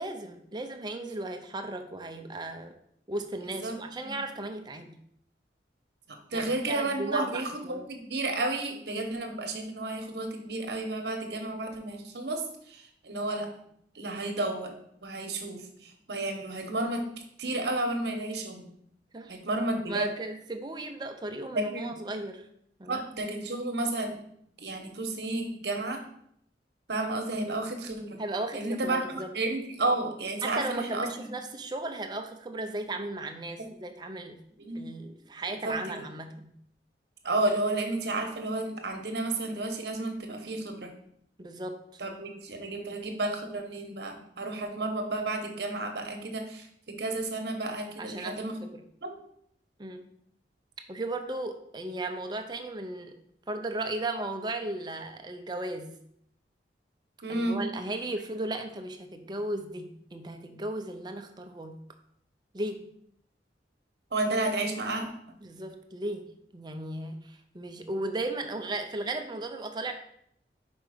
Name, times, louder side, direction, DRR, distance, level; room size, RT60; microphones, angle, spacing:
voice 1, 0.0-2.8 3.1-5.0 6.3-7.9 19.1-19.4 19.9-22.4 22.8-23.0 28.2-29.3 30.4-34.4 34.7-36.5 41.4-41.8 48.0-48.8 49.8-50.1 50.9-53.1 53.5-56.0 57.3-61.8 62.5-62.9 65.4-69.9, right 2 dB, 25° right, 6 dB, 0.5 m, -36 dB
voice 2, 6.1-13.6 13.9-17.0 17.4-18.7 19.3-20.1 21.5-21.9 22.8-24.2 24.6-26.0 26.9-28.2 28.5-31.3 34.6-34.8 35.6-36.1 37.2-40.9 42.0-48.6 49.0-49.1 57.2-57.6 64.1-65.3, right 2 dB, 65° right, 4 dB, 1.0 m, -32 dB
5.1 x 4.6 x 5.0 m, 0.70 s
head